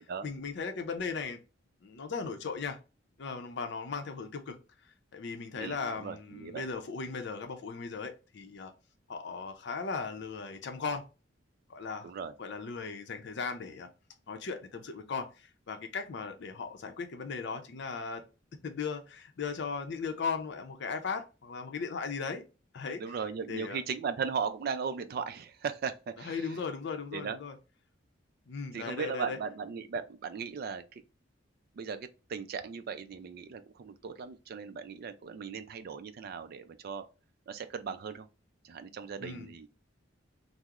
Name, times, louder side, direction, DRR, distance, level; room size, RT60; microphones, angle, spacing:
voice 1, 0.2-1.4 1.8-2.8 3.2-4.6 5.1-8.7 9.1-11.1 11.7-12.1 12.4-13.9 14.3-18.2 18.6-22.4 22.7-23.0 23.5-23.8 26.2-27.5 28.5-29.4 39.2-39.5, left 5 dB, 65° left, 0.5 m, -37 dB
voice 2, 5.6-6.6 12.0-12.3 23.0-26.6 27.1-27.4 28.7-31.0 31.7-37.1 37.5-38.3 38.6-39.7, right 6 dB, 55° right, 0.3 m, -37 dB
3.5 x 2.0 x 2.8 m
head